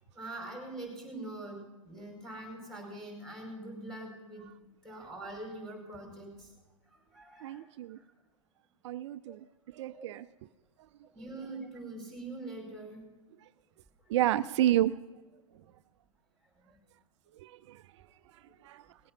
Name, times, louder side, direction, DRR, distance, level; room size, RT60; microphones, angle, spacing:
voice 1, 0.1-4.4 4.8-6.5 6.9-7.6 7.9-8.1 9.3-9.4 9.9-10.0 11.1-13.1 16.6-16.8 18.5-18.6, right 2 dB, ahead, 0 dB, 5.0 m, -43 dB
voice 2, 7.4-8.0 8.8-9.4 9.7-10.2 14.1-14.9 17.4-17.8 18.6-18.8, right 13 dB, 60° right, 14 dB, 0.5 m, -30 dB
19.0 x 8.6 x 6.0 m, 1.2 s
hypercardioid pair, 115°, 17 cm